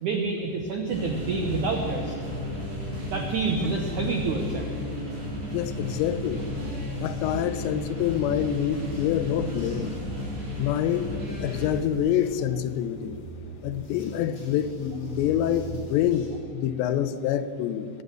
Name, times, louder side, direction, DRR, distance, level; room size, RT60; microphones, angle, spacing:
voice 1, 0.0-2.1 3.0-4.7 10.3-10.5, right 4 dB, 85° right, 3 dB, 1.7 m, -28 dB
sound 1, 0.9-11.7, left 1 dB, 35° right, 4.9 m, -33 dB
voice 2, 5.5-6.4 7.0-9.9 10.6-13.2 13.6-17.9, left 10 dB, 90° left, 11 dB, 2.9 m, -26 dB
sound 2, 6.4-16.4, right 2 dB, 25° left, 3.8 m, -45 dB
22.0 x 8.2 x 6.8 m, 2.6 s
omnidirectional pair, 4.9 m